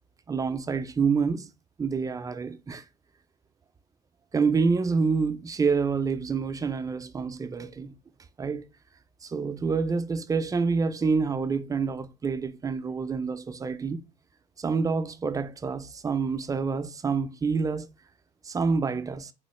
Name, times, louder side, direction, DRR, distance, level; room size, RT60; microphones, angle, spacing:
voice 1, 0.3-1.5 1.8-2.8 4.3-8.0 8.4-8.6 9.2-14.0 14.6-17.9 18.4-19.3, right 5 dB, 20° right, 0.3 m, -27 dB
3.6 x 2.4 x 3.0 m
cardioid pair, 110°, 17 cm